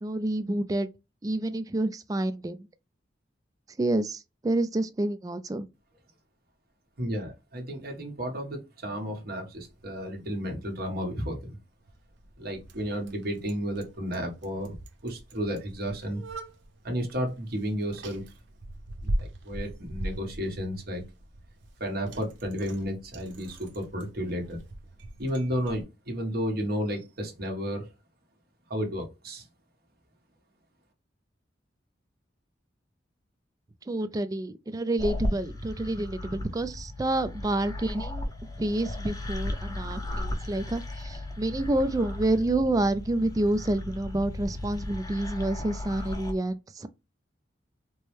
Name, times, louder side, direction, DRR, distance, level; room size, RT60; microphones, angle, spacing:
voice 1, 0.0-0.9 1.2-2.7 3.8-5.7 33.9-38.3 38.6-46.9, right 1 dB, 20° right, 0.3 m, -28 dB
voice 2, 7.0-11.6 12.4-14.8 15.0-16.2 16.8-18.2 19.2-21.0 21.8-24.6 25.2-27.9 28.7-29.4, equal, 55° right, 1.3 m, -32 dB
Bicycle, 9.5-25.8, right 1 dB, 80° right, 0.8 m, -41 dB
sound 1, 35.0-46.3, left 1 dB, 20° left, 0.6 m, -35 dB
4.5 x 2.1 x 3.1 m
head